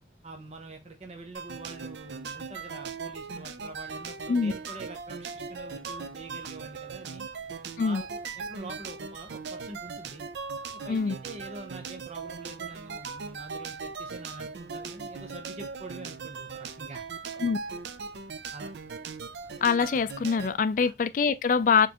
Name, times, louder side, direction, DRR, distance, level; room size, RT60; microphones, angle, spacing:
voice 1, 0.2-7.3 7.8-8.1 8.5-10.2 10.8-17.0 18.5-18.7 20.8-20.9, right 2 dB, 40° right, 0.7 m, -45 dB
sound 1, 1.3-20.5, right 5 dB, 75° right, 0.4 m, -39 dB
voice 2, 19.6-21.9, left 5 dB, 45° left, 0.3 m, -24 dB
4.3 x 3.2 x 2.9 m
head